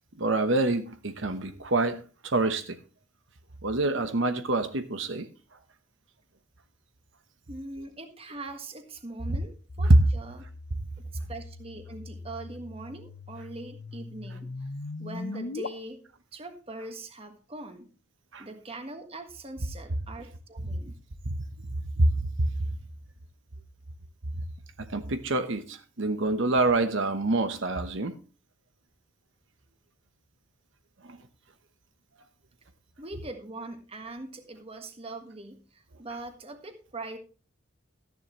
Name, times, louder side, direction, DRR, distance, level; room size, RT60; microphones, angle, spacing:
voice 1, 0.2-2.8 3.6-5.3 18.3-18.4 21.2-21.3 22.0-22.3 24.8-28.1 31.0-31.2, right 2 dB, 70° right, 8 dB, 1.0 m, -27 dB
voice 2, 7.5-10.5 11.0-14.7 15.0-16.0 16.3-17.9 18.4-20.9 33.0-37.2, right 2 dB, 30° right, 6 dB, 1.6 m, -42 dB
sound 1, 9.7-15.7, left 3 dB, 60° left, 0.7 m, -40 dB
14.0 x 10.5 x 3.1 m, 0.37 s
head